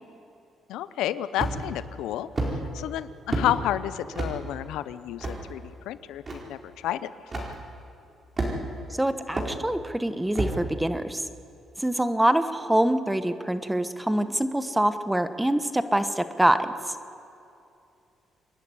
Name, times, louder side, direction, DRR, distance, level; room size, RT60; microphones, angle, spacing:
voice 1, 0.7-7.5, left 12 dB, 90° left, 15 dB, 0.6 m, -31 dB
sound 1, 1.4-1.8 2.4-2.5 3.3-3.5 4.1-4.3 5.2-5.4 6.3-6.4 7.3-7.5 8.4-8.8 9.4-9.5 10.3-10.6, right 2 dB, 35° right, 4.5 m, -28 dB
voice 2, 9.0-11.2 11.8-17.0, right 1 dB, 10° right, 11 dB, 1.2 m, -25 dB
26.5 x 11.0 x 10.0 m, 2.6 s
cardioid pair, 90°, 0 cm